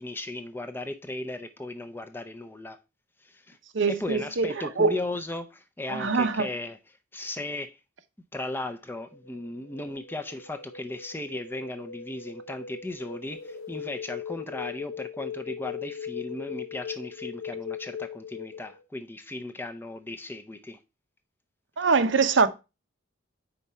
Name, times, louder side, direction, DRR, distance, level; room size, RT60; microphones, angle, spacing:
voice 1, 0.0-2.8 3.2-3.6 3.9-7.8 8.3-20.8, left 2 dB, 10° left, 0.5 m, -36 dB
voice 2, 3.7-4.5 4.8-5.0 5.9-6.5 21.8-22.5, right 4 dB, 70° right, 0.7 m, -23 dB
sound 1, 9.1-18.8, left 7 dB, 80° left, 0.6 m, -40 dB
4.9 x 4.1 x 5.5 m
head